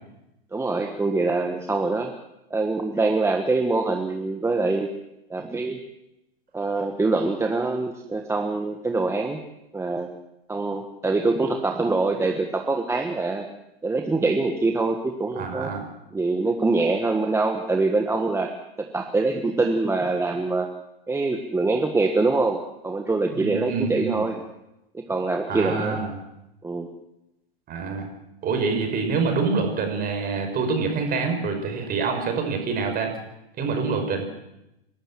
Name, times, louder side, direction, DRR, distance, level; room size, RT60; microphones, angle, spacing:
voice 1, 0.5-2.1 2.5-4.9 5.3-5.8 6.5-9.4 9.7-10.1 10.5-13.5 13.8-15.7 16.1-18.5 18.8-20.7 21.1-24.4 24.9-26.0 26.6-26.9, right 3 dB, 10° right, 3 dB, 1.5 m, -24 dB
voice 2, 15.4-15.8 23.3-24.2 25.5-26.1 27.7-28.1 28.4-33.1 33.6-34.3, right 4 dB, 30° right, 5 dB, 5.5 m, -26 dB
29.5 x 12.5 x 7.6 m, 0.89 s
hypercardioid pair, 115°, 31 cm